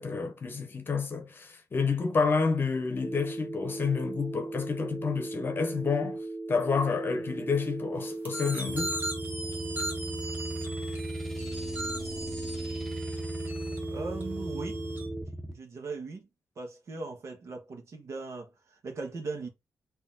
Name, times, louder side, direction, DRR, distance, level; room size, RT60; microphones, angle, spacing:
voice 1, 0.0-6.2 6.5-9.0, left 5 dB, 35° left, 0.9 m, -29 dB
Telephone, 3.0-15.2, right 2 dB, 15° right, 0.4 m, -38 dB
sound 1, 8.2-15.1, right 1 dB, 30° right, 1.4 m, -39 dB
sound 2, 8.7-15.5, right 1 dB, 5° left, 0.9 m, -39 dB
voice 2, 13.9-14.7 15.5-16.3 16.5-19.5, right 3 dB, 50° right, 1.5 m, -39 dB
4.0 x 3.0 x 3.8 m
wide cardioid pair, 160°, 6 cm